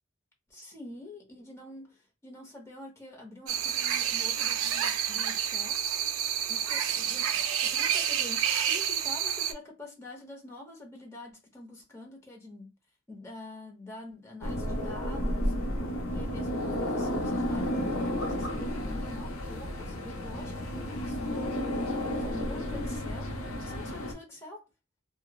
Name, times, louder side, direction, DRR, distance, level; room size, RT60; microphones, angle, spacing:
voice 1, 0.5-5.8 6.5-12.7 13.1-15.5 16.1-21.6 22.0-24.7, left 1 dB, 15° left, 0.7 m, -46 dB
sound 1, 3.5-9.5, right 9 dB, 80° right, 0.4 m, -29 dB
sound 2, 14.4-24.1, left 1 dB, 80° left, 0.6 m, -32 dB
3.0 x 2.0 x 2.2 m
head